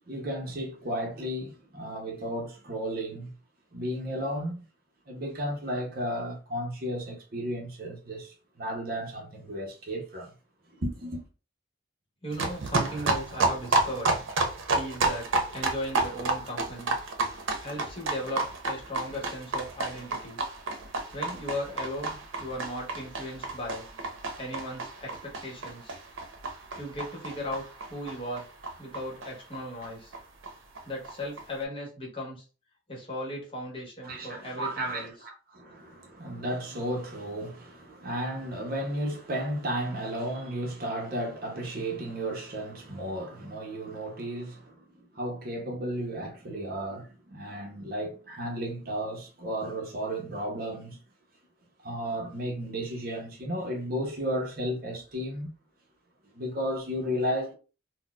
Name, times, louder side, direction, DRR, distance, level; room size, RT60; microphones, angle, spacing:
voice 1, 0.1-3.3 3.7-4.6 5.1-10.3 10.7-11.2 34.0-51.0 51.8-55.5 56.3-57.5, equal, 50° right, 0.6 m, -34 dB
voice 2, 12.2-14.1 14.7-17.0 17.6-20.4 21.1-23.9 24.1-26.0 26.8-27.6 27.9-28.5 28.8-30.1 30.8-32.4 32.9-35.3, equal, 25° left, 1.0 m, -37 dB
sound 1, 12.3-29.6 29.8-29.9 30.1-30.2 30.4-30.5 30.7-31.4, right 3 dB, 90° right, 0.6 m, -31 dB
4.1 x 2.0 x 2.3 m
head